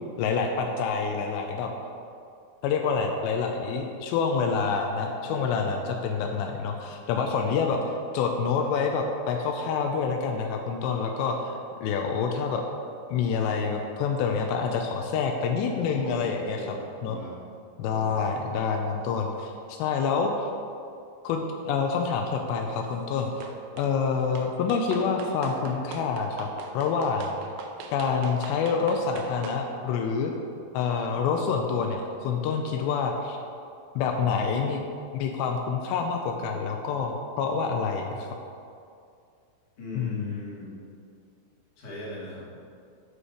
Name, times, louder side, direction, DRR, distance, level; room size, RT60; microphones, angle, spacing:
voice 1, 0.2-1.7 2.6-11.5 11.8-12.6 13.1-16.6 17.0-17.2 17.8-20.5 21.2-23.5 23.8-26.5 26.7-27.4 27.9-30.3 30.7-33.4 34.0-34.8 35.1-38.3 40.0-40.2, left 5 dB, 90° left, 3 dB, 2.5 m, -27 dB
voice 2, 5.2-5.8 15.7-17.3 17.8-18.3 39.8-40.8 41.8-42.6, left 1 dB, 50° left, -7 dB, 2.8 m, -39 dB
sound 1, 23.4-23.9 24.4-29.6, right 5 dB, 85° right, 2.4 m, -41 dB
8.1 x 5.1 x 4.9 m, 2.4 s
omnidirectional pair, 5.5 m